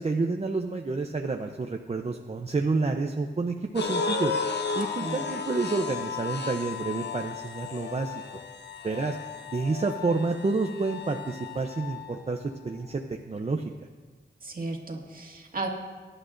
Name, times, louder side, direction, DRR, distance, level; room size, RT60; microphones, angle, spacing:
voice 1, 0.0-4.3 4.7-8.2 8.8-9.2 9.5-13.6, right 3 dB, 35° right, 3 dB, 0.6 m, -29 dB
sound 1, 3.8-12.1, left 5 dB, 75° left, 0.9 m, -34 dB
voice 2, 14.4-15.7, right 3 dB, 50° right, 0 dB, 1.9 m, -34 dB
23.0 x 11.0 x 2.6 m, 1.4 s
wide cardioid pair, 110°, 18 cm